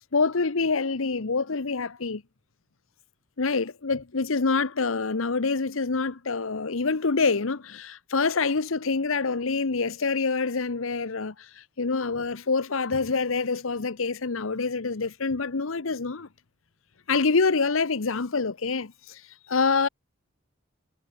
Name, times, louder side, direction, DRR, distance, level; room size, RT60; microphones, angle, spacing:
voice 1, 0.1-2.2 3.4-16.3 17.1-19.2 19.5-19.9, left 4 dB, 75° left, 0.9 m, -26 dB
head